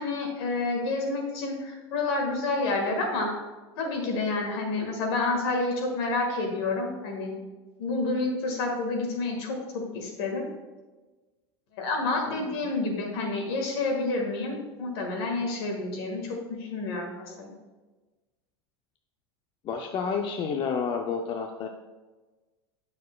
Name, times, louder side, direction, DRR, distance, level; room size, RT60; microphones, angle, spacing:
voice 1, 0.0-3.4 3.7-7.3 7.8-10.5 11.7-17.5, left 3 dB, 70° left, 1 dB, 1.7 m, -29 dB
voice 2, 19.6-21.7, left 6 dB, 40° left, 3 dB, 0.6 m, -30 dB
8.2 x 6.4 x 2.3 m, 1.2 s
hypercardioid pair, 95°, 13 cm